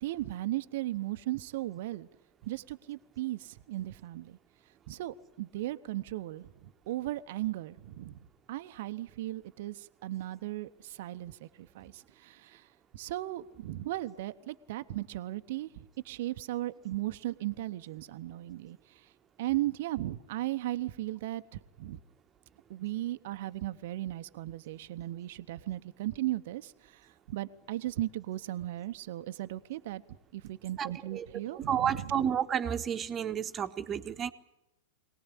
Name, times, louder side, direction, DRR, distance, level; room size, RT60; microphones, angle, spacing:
voice 1, 0.0-2.1 2.4-4.4 4.9-12.7 12.9-19.1 19.4-22.0 22.7-30.0 30.3-32.0, right 15 dB, 60° right, 11 dB, 0.9 m, -36 dB
voice 2, 30.8-31.3 31.5-34.3, right 8 dB, 25° right, 8 dB, 1.3 m, -31 dB
23.0 x 18.5 x 10.0 m, 0.91 s
figure-of-eight pair, 100°, 0 cm